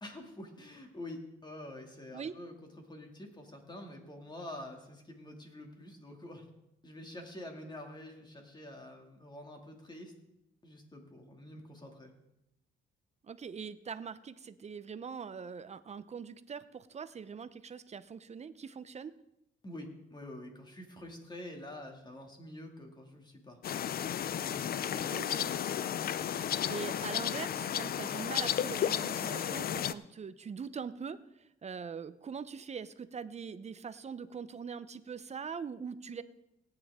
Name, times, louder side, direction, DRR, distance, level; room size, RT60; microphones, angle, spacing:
voice 1, 0.0-6.5 6.8-10.1 10.6-12.1 19.6-23.6 24.3-25.1 26.2-26.7, left 1 dB, 20° left, 2 dB, 2.5 m, -47 dB
voice 2, 13.2-19.1 25.1-25.6 26.2-36.2, right 6 dB, 35° right, 13 dB, 0.7 m, -42 dB
sound 1, 23.6-29.9, left 9 dB, 50° left, 0.5 m, -33 dB
17.5 x 9.5 x 3.7 m, 0.86 s
cardioid pair, 90°, 20 cm